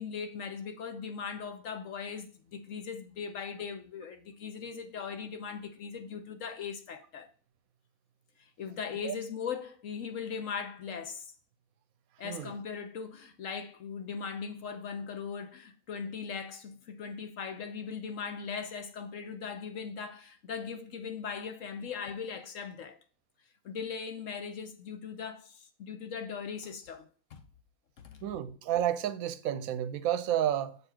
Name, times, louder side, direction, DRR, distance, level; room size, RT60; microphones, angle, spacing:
voice 1, 0.0-7.3 8.6-11.3 12.2-23.0 23.6-27.4 28.0-28.2, left 6 dB, 65° left, 1.2 m, -39 dB
voice 2, 28.2-30.8, right 11 dB, 75° right, 1.0 m, -31 dB
6.8 x 4.4 x 4.4 m
omnidirectional pair, 1.5 m